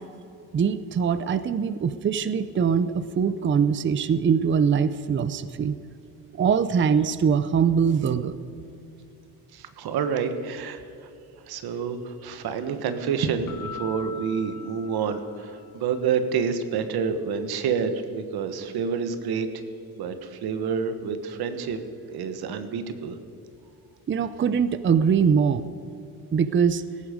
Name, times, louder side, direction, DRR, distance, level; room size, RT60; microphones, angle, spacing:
voice 1, 0.5-5.8 6.4-8.3 24.1-25.7 26.3-26.8, right 6 dB, 30° right, 14 dB, 0.6 m, -22 dB
voice 2, 9.5-11.1 11.4-19.5 20.0-21.8 22.1-23.2, right 6 dB, 90° right, 9 dB, 1.4 m, -28 dB
Keyboard (musical), 13.5-15.9, left 6 dB, 60° left, 1.3 m, -42 dB
17.5 x 14.5 x 5.2 m, 2.7 s
cardioid pair, 125°, 37 cm